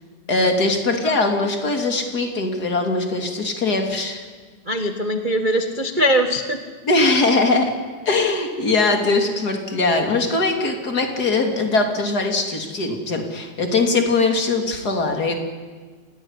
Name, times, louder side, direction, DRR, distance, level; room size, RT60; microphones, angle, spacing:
voice 1, 0.3-4.2 6.8-7.7 8.0-15.3, left 3 dB, 30° left, 4 dB, 3.3 m, -21 dB
voice 2, 4.7-6.6, equal, 55° right, 6 dB, 0.5 m, -21 dB
29.0 x 17.0 x 9.9 m, 1.5 s
omnidirectional pair, 3.4 m